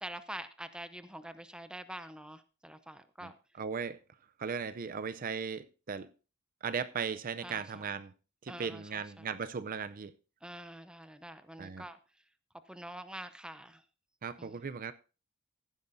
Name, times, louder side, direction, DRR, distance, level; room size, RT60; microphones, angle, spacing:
voice 1, 0.0-3.4 7.4-7.9 8.5-9.3 10.4-12.0 12.7-13.8 14.4-14.6, right 1 dB, 5° right, 0.7 m, -46 dB
voice 2, 3.6-4.0 4.4-6.1 6.6-8.1 8.4-10.1 11.6-11.8 14.2-14.9, right 6 dB, 45° right, 0.5 m, -37 dB
15.0 x 11.0 x 2.6 m
head